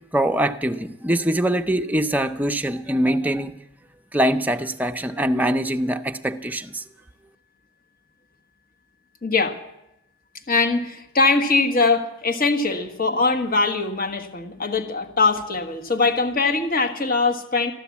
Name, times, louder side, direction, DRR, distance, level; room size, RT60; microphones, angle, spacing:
voice 1, 0.1-3.5 4.1-6.8, right 1 dB, 10° right, 6 dB, 0.6 m, -23 dB
voice 2, 9.2-9.6 10.5-17.7, left 3 dB, 40° left, 5 dB, 1.4 m, -21 dB
13.5 x 12.0 x 8.4 m, 0.87 s
head